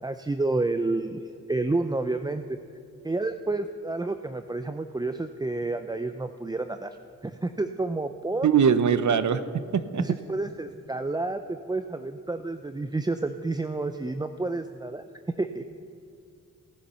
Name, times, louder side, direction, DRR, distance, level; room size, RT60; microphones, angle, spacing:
voice 1, 0.0-2.6 3.0-7.0 7.2-8.5 10.0-15.0 15.4-15.6, right 2 dB, 10° right, 9 dB, 0.4 m, -30 dB
voice 2, 8.4-10.0, right 7 dB, 60° right, 13 dB, 0.7 m, -22 dB
17.5 x 10.0 x 5.6 m, 2.5 s
cardioid pair, 85°, 34 cm